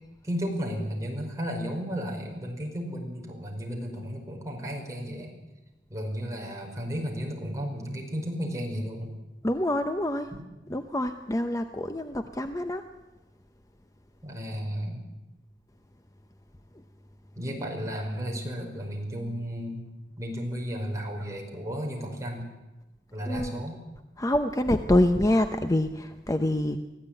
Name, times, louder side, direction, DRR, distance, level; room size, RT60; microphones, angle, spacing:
voice 1, 0.2-5.3 5.9-9.1 10.3-10.4 14.2-15.0 17.4-19.8 20.2-22.5 23.1-23.8, equal, 20° right, 0 dB, 5.3 m, -33 dB
voice 2, 9.4-10.3 10.7-12.8 23.3-23.6 24.2-26.8, left 1 dB, 20° left, 8 dB, 0.8 m, -26 dB
24.0 x 15.5 x 9.1 m, 1.1 s
head